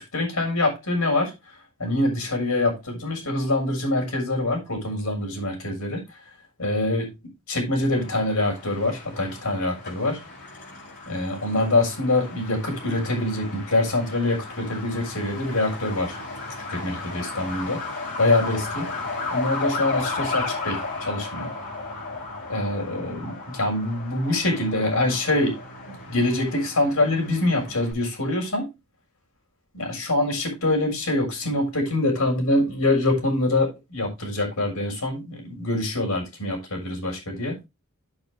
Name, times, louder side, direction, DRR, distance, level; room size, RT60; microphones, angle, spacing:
voice 1, 0.0-1.3 1.8-6.0 6.6-7.1 7.5-10.2 11.1-16.2 16.7-17.8 18.2-18.9 19.3-21.5 22.5-25.6 25.9-28.7 29.7-37.6, left 2 dB, 75° left, 6.4 m, -25 dB
Truck, 7.9-27.9, left 3 dB, 50° left, 6.9 m, -35 dB
8.8 x 8.1 x 3.5 m
head